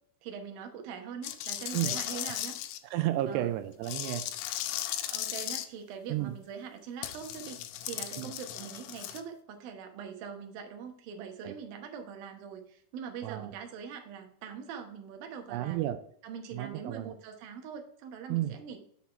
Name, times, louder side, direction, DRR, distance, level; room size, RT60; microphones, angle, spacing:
voice 1, 0.2-2.6 3.3-3.5 5.1-15.8 16.2-18.8, right 7 dB, 65° right, 4 dB, 2.7 m, -43 dB
sound 1, 1.2-2.8 3.8-5.7 7.0-9.2, left 12 dB, 80° left, 2.8 m, -36 dB
voice 2, 2.8-4.2 6.1-6.4 8.2-8.3 11.4-11.5 13.2-13.5 15.5-16.0 16.5-17.1 18.3-18.6, right 14 dB, 80° right, 11 dB, 2.6 m, -32 dB
7.3 x 5.8 x 4.5 m, 0.65 s
omnidirectional pair, 5.0 m